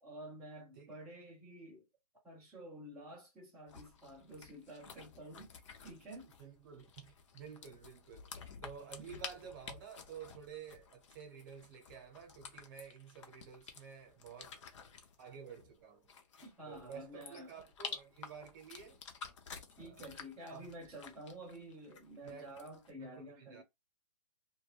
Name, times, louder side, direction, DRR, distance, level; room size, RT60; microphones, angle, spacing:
voice 1, 0.0-1.9 2.2-5.6 5.8-6.3 9.0-9.3 16.4-17.5 19.8-23.6, right 1 dB, 5° right, 0.5 m, -50 dB
sound 1, 3.7-22.9, left 6 dB, 50° left, 0.6 m, -52 dB
voice 2, 6.4-8.3 8.6-14.6 15.2-16.1 16.6-19.0 19.8-20.0 20.5-20.7 22.2-22.5 23.0-23.6, right 7 dB, 30° right, 0.8 m, -51 dB
2.2 x 2.1 x 3.1 m
hypercardioid pair, 145°, 21 cm